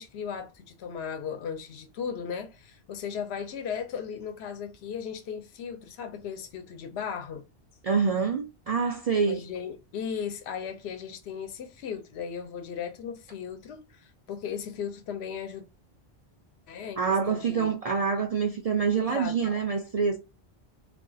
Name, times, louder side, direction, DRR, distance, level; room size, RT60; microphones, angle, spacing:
voice 1, 0.0-7.4 9.3-15.7 16.7-17.7 19.0-19.4, left 7 dB, 75° left, 0.9 m, -36 dB
voice 2, 7.8-9.4 17.0-20.2, right 5 dB, 60° right, 0.4 m, -26 dB
2.4 x 2.3 x 3.8 m
omnidirectional pair, 1.1 m